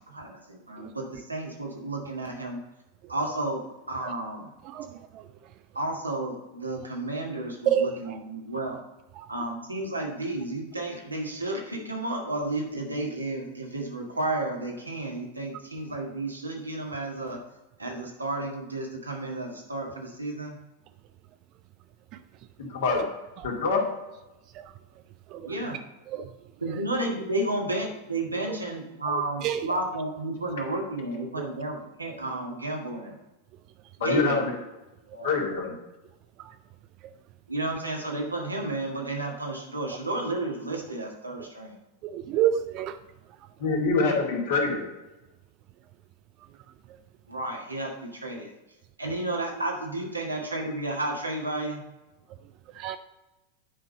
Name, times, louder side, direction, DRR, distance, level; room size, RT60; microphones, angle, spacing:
voice 1, 0.1-2.6 3.1-4.5 5.7-8.8 9.3-17.4 17.8-20.6 25.4-25.8 26.6-33.2 34.0-34.5 35.1-35.4 37.5-41.8 47.3-48.5 49.0-51.8, right 2 dB, 80° right, 0 dB, 1.7 m, -32 dB
voice 2, 22.6-23.1 23.4-23.8 34.0-34.6 35.2-35.7 43.6-44.8, left 4 dB, 60° left, -1 dB, 2.1 m, -25 dB
voice 3, 42.0-43.0 52.8-53.0, right 10 dB, 40° right, 10 dB, 0.4 m, -26 dB
9.8 x 5.3 x 4.0 m, 1.0 s
figure-of-eight pair, 90°, 0 cm